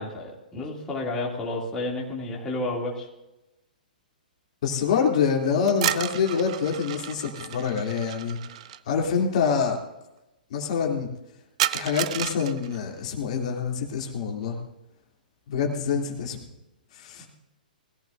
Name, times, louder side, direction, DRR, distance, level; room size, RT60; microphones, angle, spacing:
voice 1, 0.0-3.1 17.2-17.3, left 2 dB, 15° left, -3 dB, 2.5 m, -31 dB
voice 2, 4.6-8.4 8.9-9.8 10.5-11.1 11.7-14.6 15.5-16.4 16.9-17.3, left 6 dB, 50° left, 0 dB, 2.7 m, -26 dB
sound 1, 5.7-8.8 11.6-12.8, right 12 dB, 45° right, 0.5 m, -31 dB
20.5 x 14.5 x 2.6 m, 0.94 s
figure-of-eight pair, 115°, 5 cm